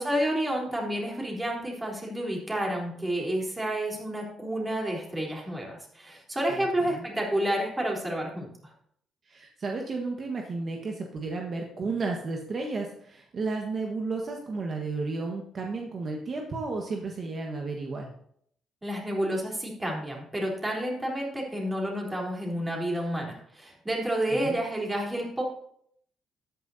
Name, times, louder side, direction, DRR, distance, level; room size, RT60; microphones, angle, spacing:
voice 1, 0.0-8.5 18.8-25.4, right 1 dB, 15° right, -2 dB, 3.7 m, -30 dB
voice 2, 6.5-7.0 9.3-18.1 24.3-24.6, right 3 dB, 50° right, 1 dB, 1.4 m, -33 dB
13.0 x 9.8 x 2.8 m, 0.66 s
cardioid pair, 90°, 0 cm